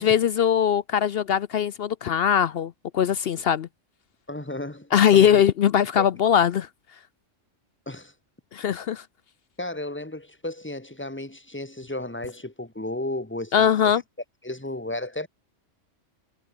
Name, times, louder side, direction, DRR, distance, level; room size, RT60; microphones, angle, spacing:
voice 1, 0.0-3.7 4.9-6.7 8.5-9.0 13.5-14.0, left 9 dB, 60° left, 0.7 m, -21 dB
voice 2, 4.3-5.4 6.0-6.1 7.9-8.1 9.6-13.9 14.4-15.3, left 1 dB, 10° left, 1.8 m, -34 dB
omnidirectional pair, 1.3 m